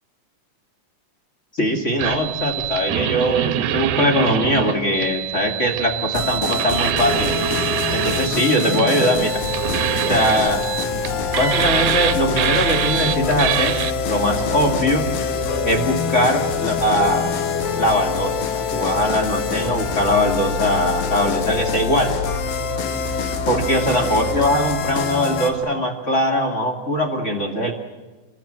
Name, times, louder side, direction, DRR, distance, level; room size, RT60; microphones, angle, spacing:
voice 1, 1.5-7.3 7.9-9.4 10.1-10.6 11.3-13.8 14.1-15.1 15.6-17.4 17.8-22.1 23.5-27.7, equal, 25° left, 4 dB, 1.8 m, -21 dB
sound 1, 2.0-13.9, right 11 dB, 70° right, 2.1 m, -25 dB
Mechanical fan, 5.7-24.1, left 2 dB, 40° left, 1.7 m, -41 dB
sound 2, 6.1-25.5, left 6 dB, 85° left, 3.7 m, -25 dB
28.5 x 21.5 x 7.6 m, 1.3 s
omnidirectional pair, 4.2 m